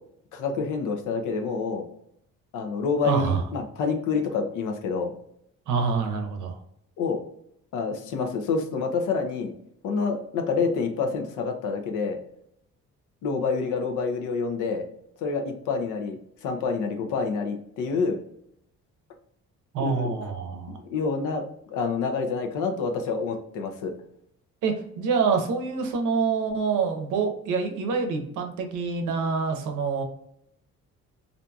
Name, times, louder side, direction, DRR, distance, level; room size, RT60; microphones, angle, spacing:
voice 1, 0.3-1.8 2.5-5.1 7.0-7.2 7.7-9.5 9.8-12.2 13.2-14.8 15.2-18.2 19.8-20.1 20.9-21.4 21.7-23.9, left 4 dB, 85° left, 5 dB, 0.6 m, -27 dB
voice 2, 3.0-3.4 5.7-6.6 19.7-20.8 24.6-30.0, right 5 dB, 80° right, 4 dB, 0.6 m, -26 dB
2.5 x 2.3 x 2.6 m, 0.74 s
cardioid pair, 90°, 30 cm